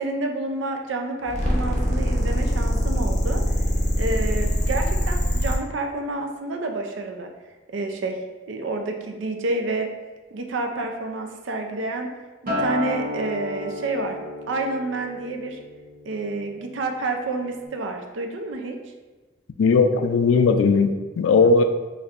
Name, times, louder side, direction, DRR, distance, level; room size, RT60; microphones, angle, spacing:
voice 1, 0.0-3.4 4.0-7.3 7.7-8.2 8.5-9.9 10.3-12.1 12.4-14.2 14.5-15.6 16.1-18.8, right 2 dB, 75° right, 4 dB, 0.5 m, -29 dB
sound 1, 1.2-5.6, equal, 35° left, 0.7 m, -22 dB
Acoustic guitar, 12.5-16.9 17.3-17.7, left 2 dB, 45° right, 0.8 m, -32 dB
voice 2, 19.6-21.6, left 4 dB, 85° left, 8 dB, 0.3 m, -18 dB
4.1 x 3.2 x 2.5 m, 1.3 s
head